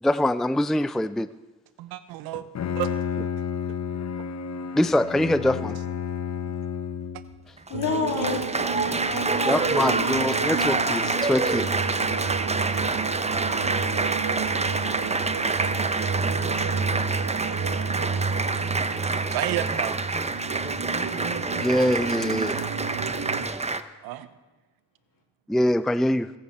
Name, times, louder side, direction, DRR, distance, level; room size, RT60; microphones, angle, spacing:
voice 1, 0.0-1.3 4.7-5.8 9.5-11.7 21.6-22.6 25.5-26.3, left 1 dB, ahead, 14 dB, 0.5 m, -24 dB
voice 2, 1.8-2.4 2.8-2.9 19.3-20.0 21.7-22.7 24.0-24.3, right 14 dB, 85° right, 13 dB, 0.9 m, -32 dB
Bowed string instrument, 2.3-7.4, left 7 dB, 50° left, 1.0 m, -31 dB
Applause, 7.6-23.8, right 3 dB, 20° right, 1.0 m, -27 dB
voice 3, 7.7-9.9 10.2-11.3 14.2-14.3 22.4-22.6, left 4 dB, 65° left, 0 dB, 3.7 m, -33 dB
sound 1, 7.7-23.5, right 5 dB, 50° right, 1.5 m, -31 dB
21.5 x 9.0 x 4.5 m, 1.2 s
supercardioid pair, 50°, 35 cm